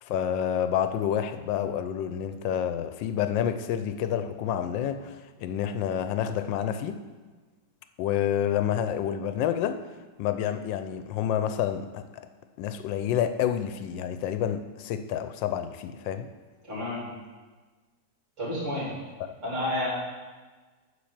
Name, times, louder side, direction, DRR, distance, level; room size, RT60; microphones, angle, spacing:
voice 1, 0.0-7.0 8.0-9.8 10.2-12.3 12.6-16.3, left 9 dB, 85° left, 10 dB, 1.3 m, -29 dB
voice 2, 16.6-17.1 18.4-18.9 19.4-19.9, left 1 dB, 40° right, -6 dB, 3.0 m, -30 dB
9.5 x 4.4 x 7.1 m, 1.3 s
omnidirectional pair, 2.0 m